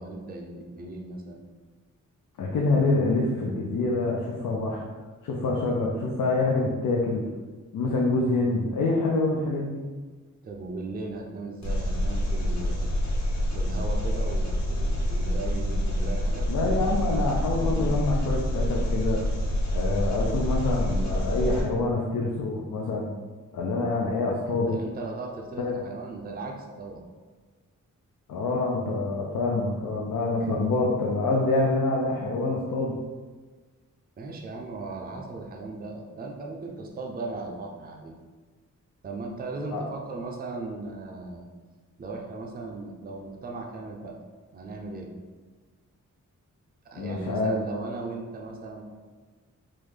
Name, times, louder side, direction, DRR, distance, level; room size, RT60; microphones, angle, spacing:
voice 1, 0.0-1.4 10.4-13.0 13.5-16.5 24.5-27.0 34.2-38.2 39.0-41.5 42.0-44.2 44.5-45.1 46.8-48.8, right 3 dB, 30° right, 1 dB, 0.4 m, -37 dB
voice 2, 2.4-4.9 5.2-7.2 7.7-9.8 16.5-19.3 19.7-23.1 23.5-24.8 25.6-25.8 28.3-32.9 39.7-39.8 47.0-47.6, left 2 dB, 80° left, -2 dB, 0.5 m, -26 dB
Engine, 11.6-21.6, left 1 dB, 55° left, 1.1 m, -27 dB
3.6 x 2.1 x 3.2 m, 1.3 s
wide cardioid pair, 115°, 32 cm